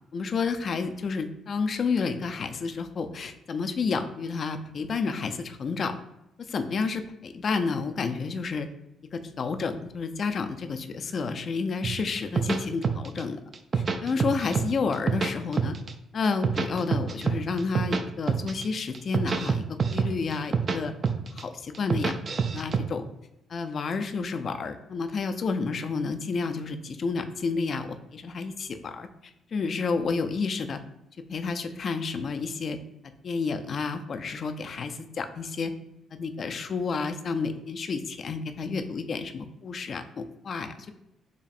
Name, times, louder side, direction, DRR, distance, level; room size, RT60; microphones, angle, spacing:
voice 1, 0.1-5.9 6.4-8.7 9.1-13.4 13.7-15.7 16.1-19.6 19.9-20.9 21.3-22.1 22.5-23.1 23.5-29.1 29.5-30.8 31.3-32.8 33.2-35.7 36.1-40.9, left 4 dB, 50° left, 8 dB, 0.3 m, -30 dB
sound 1, 11.8-13.2 13.5-14.7 14.9-15.9 16.2-18.0 18.3-18.6 18.9-20.8 21.0-21.4 21.7-22.8, right 5 dB, 45° right, 0.3 m, -26 dB
4.1 x 3.0 x 2.5 m, 0.86 s
cardioid pair, 90°, 0 cm